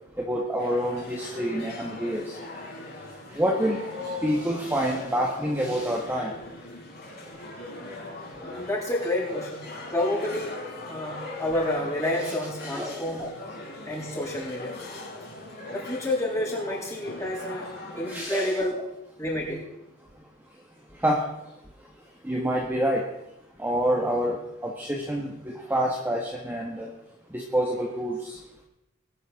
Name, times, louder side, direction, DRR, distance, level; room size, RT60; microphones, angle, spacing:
voice 1, 0.2-2.4 3.3-3.8 4.2-6.3 12.2-12.3 12.6-13.2 18.1-18.6 21.0-21.2 22.2-23.1 23.6-26.9 27.3-28.4, equal, 10° right, -2 dB, 1.6 m, -27 dB
sound 1, 0.6-18.2, left 2 dB, 45° left, 4.9 m, -40 dB
voice 2, 8.4-9.6 9.9-10.5 10.9-13.3 13.9-14.7 15.7-17.7 17.9-18.7 19.2-19.6, left 1 dB, 15° left, -6 dB, 7.0 m, -29 dB
21.5 x 11.5 x 3.9 m, 0.87 s
head